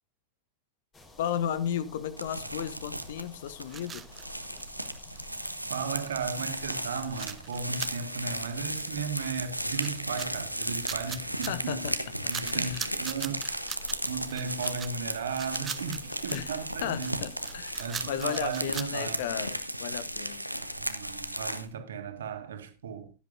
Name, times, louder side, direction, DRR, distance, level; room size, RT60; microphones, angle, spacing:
sound 1, 0.9-18.4, left 1 dB, 20° left, 3.8 m, -55 dB
voice 1, 1.2-4.0 11.1-11.2 11.5-11.9 12.2-12.9 16.3-16.6 16.8-20.4, left 9 dB, 55° left, 0.9 m, -34 dB
sound 2, 2.2-21.7, right 1 dB, 90° right, 0.9 m, -35 dB
sound 3, 3.7-5.2 5.5-5.6 5.7-5.8 6.1-6.3 6.6-9.3 9.7-12.0 12.3-18.9, right 7 dB, 20° right, 0.9 m, -42 dB
voice 2, 5.7-11.8 12.3-13.4 14.1-17.2 17.8-19.2 20.8-23.1, right 5 dB, 65° right, 1.9 m, -35 dB
16.0 x 10.5 x 2.6 m
figure-of-eight pair, 90°, 0 cm